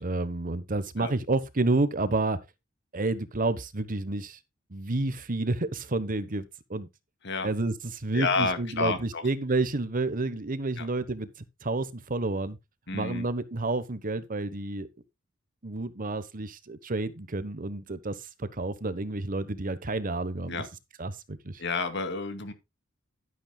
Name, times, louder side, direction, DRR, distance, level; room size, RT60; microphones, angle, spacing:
voice 1, 0.0-2.4 2.9-4.4 4.7-6.9 7.4-11.3 11.6-12.6 12.9-14.9 15.6-20.6 21.0-21.6, right 2 dB, 45° right, 1.1 m, -30 dB
voice 2, 8.1-9.2 10.8-10.9 12.9-13.3 20.5-20.7 21.6-22.5, left 4 dB, 60° left, 2.4 m, -30 dB
12.0 x 10.5 x 2.3 m
head